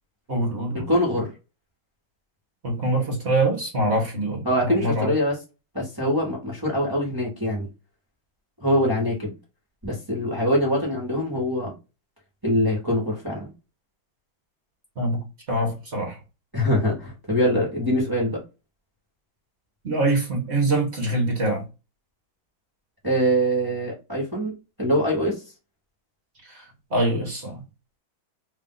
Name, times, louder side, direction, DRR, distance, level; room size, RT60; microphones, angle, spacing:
voice 1, 0.3-0.9 2.6-5.1 15.0-16.2 19.8-21.7 26.4-26.6 26.9-27.6, right 2 dB, 40° right, 1.2 m, -24 dB
voice 2, 0.9-1.3 4.4-5.3 5.7-7.7 8.6-9.3 9.8-11.7 12.4-13.5 16.5-18.4 23.0-24.5 24.8-25.3, equal, 15° right, 1.2 m, -23 dB
3.2 x 2.7 x 3.8 m
omnidirectional pair, 2.2 m